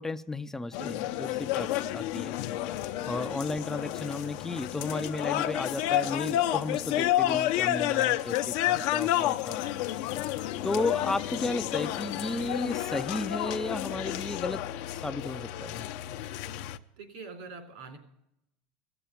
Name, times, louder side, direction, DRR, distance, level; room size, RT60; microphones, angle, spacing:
voice 1, 0.0-2.3 3.0-9.6 10.6-15.8, left 2 dB, 10° left, 0.4 m, -34 dB
sound 1, 0.7-16.8, left 13 dB, 65° left, 0.7 m, -30 dB
voice 2, 0.7-1.3 3.2-3.5 7.3-7.4 9.6-9.7 17.0-18.0, right 4 dB, 80° right, 3.4 m, -46 dB
16.5 x 7.0 x 8.8 m
supercardioid pair, 135°, 5 cm